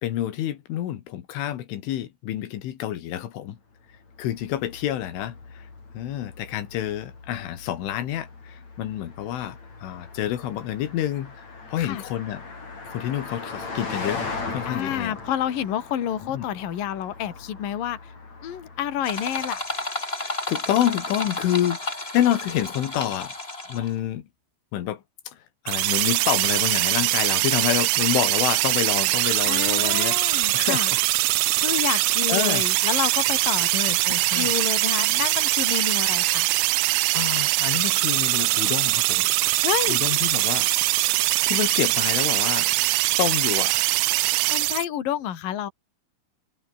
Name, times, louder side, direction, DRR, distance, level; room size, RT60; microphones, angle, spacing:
voice 1, 0.0-3.6 4.2-5.7 5.9-11.3 11.7-12.4 12.9-14.2 14.5-15.2 16.2-16.5 20.2-23.3 23.7-24.3 24.7-25.4 25.7-30.2 30.5-31.0 32.0-32.6 33.7-34.5 37.1-39.3 39.9-40.7 41.5-42.7 43.2-43.9, left 12 dB, 85° left, 4.5 m, -28 dB
Car passing by, 3.9-19.6, left 4 dB, 35° left, 7.1 m, -39 dB
voice 2, 14.7-18.1 18.4-19.6 29.4-30.9 31.6-33.7 34.0-36.5 39.6-40.0 44.5-45.7, left 10 dB, 50° left, 3.8 m, -29 dB
sound 1, 19.0-24.0, left 2 dB, 15° left, 4.0 m, -32 dB
sound 2, 25.7-44.9, right 22 dB, 80° right, 3.0 m, -22 dB
omnidirectional pair, 5.5 m